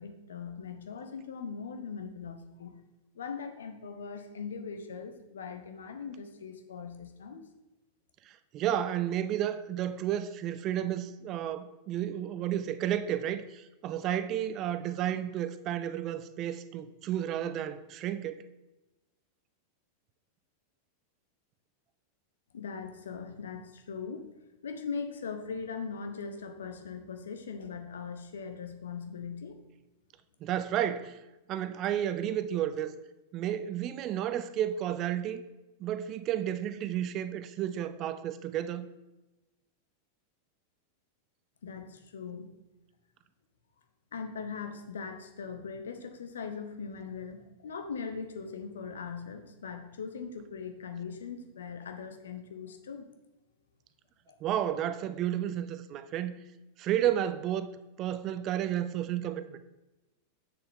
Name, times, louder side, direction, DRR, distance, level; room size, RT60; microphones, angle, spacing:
voice 1, 0.0-2.8 3.1-7.5 22.5-24.3 24.6-29.6 41.6-42.5 44.1-53.1 54.3-54.4, left 5 dB, 65° left, 0.8 m, -40 dB
voice 2, 8.3-18.5 30.4-31.2 31.5-33.0 33.3-35.4 35.8-38.9 54.4-56.4 56.8-57.7 58.0-59.6, right 11 dB, 35° right, 0.5 m, -32 dB
7.8 x 6.6 x 3.7 m
figure-of-eight pair, 90°, 0 cm